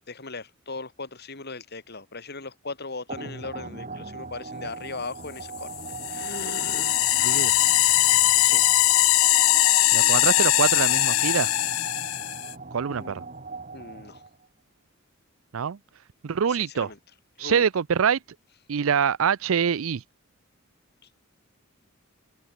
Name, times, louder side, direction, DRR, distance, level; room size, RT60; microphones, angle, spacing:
voice 1, 0.1-5.7 6.1-7.5 8.4-8.7 12.9-13.2 13.7-14.2 16.5-17.0 17.4-17.7, left 3 dB, 50° left, 3.5 m, -39 dB
sound 1, 3.1-14.5, right 4 dB, 40° right, 2.4 m, -39 dB
sound 2, 5.7-12.5, left 16 dB, 80° left, 0.5 m, -21 dB
voice 2, 7.2-7.5 9.9-11.5 12.7-13.2 15.5-15.8 16.2-16.9 17.4-18.2 18.7-20.0, right 7 dB, 75° right, 0.5 m, -24 dB
head